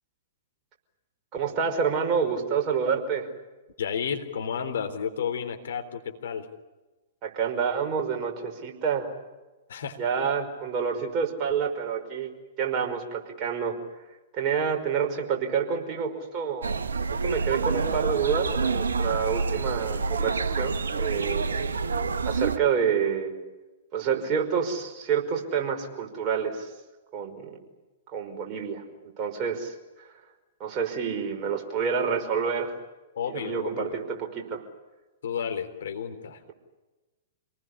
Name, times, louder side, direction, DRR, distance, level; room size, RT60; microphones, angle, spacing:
voice 1, 1.3-3.3 7.2-9.1 10.0-12.3 12.6-13.8 14.3-16.7 17.2-21.4 22.2-23.3 23.9-26.7 27.1-27.6 28.1-30.1 30.6-32.8 33.3-34.6, right 6 dB, 35° right, 2 dB, 5.4 m, -28 dB
voice 2, 3.8-6.5 9.7-10.0 33.1-33.9 35.2-36.4, left 7 dB, 65° left, 5 dB, 3.7 m, -32 dB
sound 1, 16.6-22.6, right 4 dB, 70° right, 1.5 m, -27 dB
28.0 x 19.5 x 10.0 m, 1.1 s
figure-of-eight pair, 110°, 0 cm